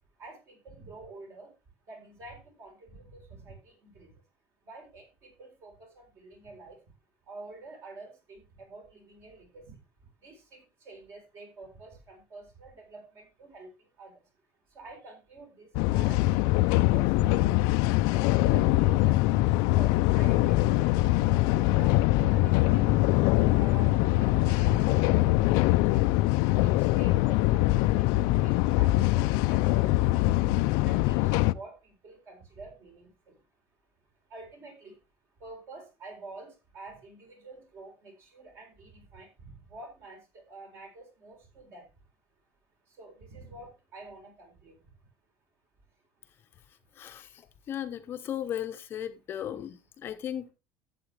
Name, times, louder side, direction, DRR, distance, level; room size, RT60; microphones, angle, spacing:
voice 1, 0.1-4.3 4.6-7.0 7.2-45.1 45.8-46.2 46.6-47.0 47.4-47.7, right 3 dB, 40° right, 4.1 m, -49 dB
sound 1, 15.7-31.5, left 17 dB, 65° left, 0.4 m, -23 dB
voice 2, 47.0-47.4 47.7-50.5, left 10 dB, 30° left, 0.8 m, -36 dB
12.0 x 8.0 x 3.3 m
cardioid pair, 160°, 7 cm